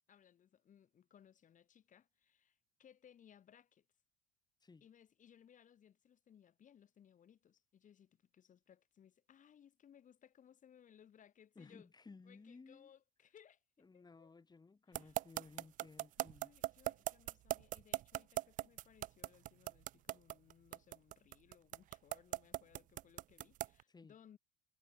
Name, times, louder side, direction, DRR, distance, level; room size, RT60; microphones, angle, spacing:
voice 1, 0.1-3.9 4.8-11.9 12.2-13.6 13.9-14.3 14.9-15.1 16.4-24.4, left 9 dB, 40° left, 4.7 m, -65 dB
voice 2, 11.6-12.9 13.8-16.5 23.9-24.1, left 4 dB, 20° left, 4.5 m, -58 dB
sound 1, 14.9-23.8, right 15 dB, 45° right, 0.5 m, -39 dB
hypercardioid pair, 65°, 19 cm